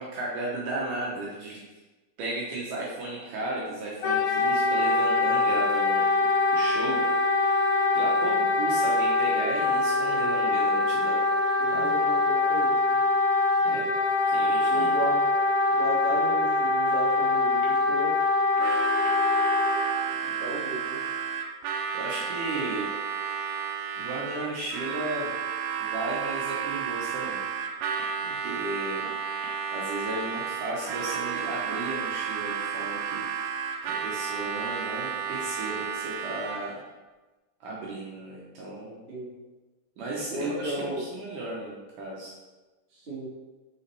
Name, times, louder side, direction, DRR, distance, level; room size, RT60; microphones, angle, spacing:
voice 1, 0.0-1.6 2.2-6.0 6.5-7.0 8.0-11.2 11.7-11.9 13.6-13.9 14.3-14.9 20.2-20.3 21.9-22.9 24.0-25.3 25.8-27.4 28.4-29.0 29.7-33.2 33.8-36.8 37.6-39.1 40.0-42.3, right 2 dB, 70° right, -4 dB, 2.2 m, -35 dB
Wind instrument woodwind instrument, 4.0-19.9, left 3 dB, 70° left, 2.1 m, -24 dB
voice 2, 11.6-13.0 14.7-15.2 15.7-18.1 20.4-21.0 28.2-28.6 39.1-39.3 40.3-41.0 42.9-43.3, right 1 dB, 30° right, -8 dB, 1.3 m, -34 dB
Harmonica, 18.5-36.8, right 7 dB, 85° right, 1.9 m, -32 dB
6.0 x 5.4 x 3.3 m, 1.2 s
omnidirectional pair, 4.3 m